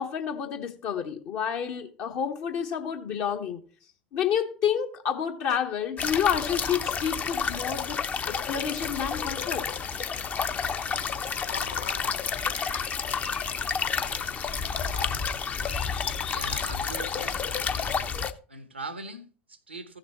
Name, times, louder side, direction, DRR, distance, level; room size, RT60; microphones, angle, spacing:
voice 1, 0.0-3.6 4.1-8.0 8.3-9.7, left 8 dB, 50° left, 1.2 m, -29 dB
sound 1, 6.0-18.3, left 6 dB, 25° left, 0.8 m, -30 dB
sound 2, 11.0-17.2, left 7 dB, 75° left, 0.5 m, -42 dB
voice 2, 16.3-17.9 18.5-20.0, right 2 dB, 85° right, 1.1 m, -41 dB
15.5 x 6.6 x 3.0 m
figure-of-eight pair, 75°, 6 cm